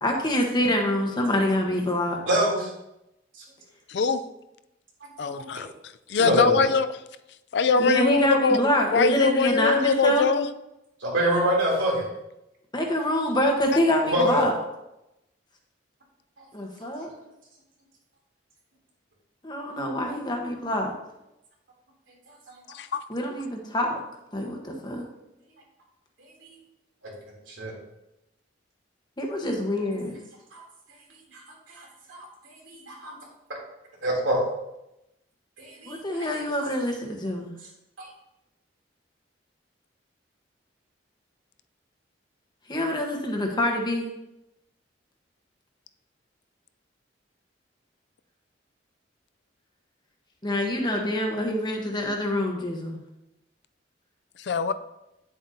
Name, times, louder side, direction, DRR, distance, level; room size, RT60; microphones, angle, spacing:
voice 1, 0.0-2.2 7.8-10.3 12.7-14.5 16.5-17.1 19.4-20.9 23.1-24.0 24.3-25.1 29.2-30.1 35.9-37.5 42.7-44.1 50.4-53.0, left 1 dB, 25° left, 2 dB, 1.2 m, -26 dB
voice 2, 2.2-2.7 5.2-5.5 6.2-6.5 11.0-12.0 14.0-14.4 26.4-26.5 27.5-27.7 30.5-30.6 31.3-31.4 31.7-32.3 32.5-33.2 34.0-34.4 35.6-36.0 38.0-38.1, equal, 90° right, -3 dB, 3.2 m, -25 dB
voice 3, 3.9-4.2 5.2-5.7 6.1-6.9 7.5-8.6 8.9-10.5 22.7-23.0 54.4-54.7, left 4 dB, 60° left, 11 dB, 0.4 m, -22 dB
9.8 x 7.5 x 2.8 m, 0.90 s
head